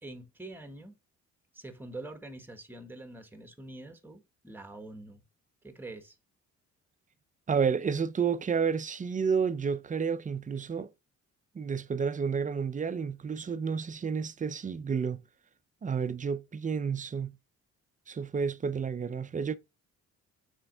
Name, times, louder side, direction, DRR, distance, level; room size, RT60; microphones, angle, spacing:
voice 1, 0.0-1.0 1.5-5.2 5.6-6.2, right 2 dB, 5° right, 1.2 m, -45 dB
voice 2, 7.5-10.9 11.5-15.2 15.8-17.3 18.1-19.6, right 6 dB, 25° right, 0.5 m, -30 dB
5.8 x 4.5 x 3.9 m
cardioid pair, 90°, 30 cm